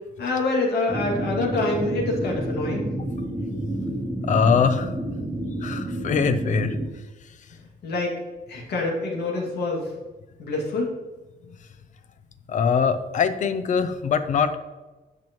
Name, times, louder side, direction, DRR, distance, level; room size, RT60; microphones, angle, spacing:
voice 1, 0.2-2.9 7.8-8.1 8.5-9.9 10.4-10.9, left 2 dB, 75° left, -2 dB, 2.2 m, -26 dB
sound 1, 0.9-6.9, right 1 dB, 10° right, 0.5 m, -29 dB
voice 2, 4.3-4.9 5.6-6.8 12.5-14.6, left 6 dB, 50° left, 11 dB, 0.5 m, -22 dB
10.5 x 6.0 x 3.1 m, 1.2 s
wide cardioid pair, 180°, 17 cm